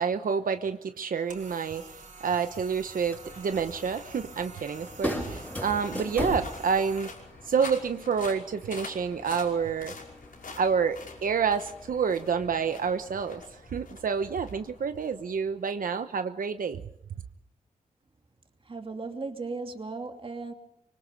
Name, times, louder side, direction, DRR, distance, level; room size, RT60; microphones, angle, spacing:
voice 1, 0.0-7.1 7.4-9.9 10.6-16.8, right 6 dB, 90° right, 9 dB, 1.0 m, -28 dB
sound 1, 1.3-7.1, right 4 dB, 70° right, 4.0 m, -47 dB
sound 2, 2.4-15.7, left 4 dB, 90° left, 5.5 m, -47 dB
sound 3, 2.9-13.4, left 1 dB, 10° left, 5.9 m, -40 dB
voice 2, 18.7-20.5, right 3 dB, 40° right, 5 dB, 2.7 m, -36 dB
25.0 x 24.5 x 5.3 m, 0.73 s
wide cardioid pair, 150°, 14 cm